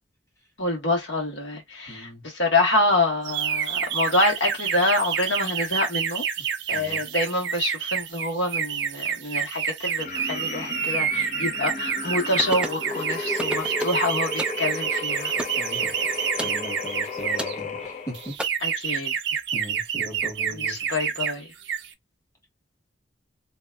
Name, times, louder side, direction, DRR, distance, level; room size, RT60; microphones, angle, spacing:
voice 1, 0.6-6.2 6.7-15.3 18.6-19.1 20.5-21.5, left 2 dB, 85° left, 1.5 m, -26 dB
voice 2, 1.9-2.2 6.7-7.0 15.6-18.4 19.5-20.7, right 1 dB, 20° left, 1.6 m, -39 dB
sound 1, 3.3-17.5 18.1-21.3 21.6-21.9, right 8 dB, 65° right, 0.5 m, -28 dB
sound 2, 10.0-18.3, left 3 dB, 45° left, 0.8 m, -33 dB
sound 3, 12.4-12.8 13.4-14.0 14.4-14.6 15.4-15.6 16.4-16.6 17.4-17.6 18.4-18.5, right 1 dB, 5° right, 0.4 m, -31 dB
2.9 x 2.7 x 2.2 m
head